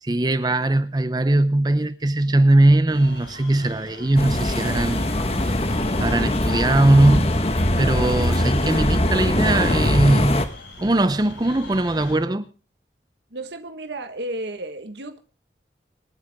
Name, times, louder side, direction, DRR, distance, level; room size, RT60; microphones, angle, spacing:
voice 1, 0.0-7.3 7.8-10.5 10.8-12.5, right 1 dB, 20° right, 0.6 m, -20 dB
sound 1, 2.9-12.2, left 2 dB, 75° left, 5.4 m, -42 dB
sound 2, 4.2-10.5, left 1 dB, 35° left, 1.3 m, -22 dB
voice 2, 13.3-15.2, right 1 dB, 75° right, 1.5 m, -33 dB
27.5 x 9.2 x 3.6 m
head